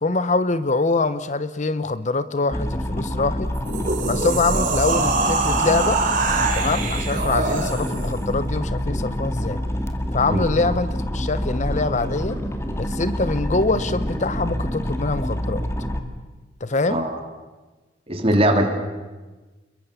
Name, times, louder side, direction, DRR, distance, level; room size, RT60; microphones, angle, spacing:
voice 1, 0.0-3.5 4.1-6.0 6.5-9.6 10.1-12.4 12.8-15.6 16.6-17.0, left 3 dB, 40° left, 13 dB, 0.8 m, -24 dB
sound 1, 2.5-16.0, equal, 15° left, 2.0 m, -27 dB
sound 2, 3.5-8.1, right 3 dB, 50° right, 4.2 m, -24 dB
voice 2, 16.9-17.2 18.1-18.7, right 1 dB, 35° right, 4 dB, 3.4 m, -20 dB
29.0 x 22.5 x 7.0 m, 1.2 s
head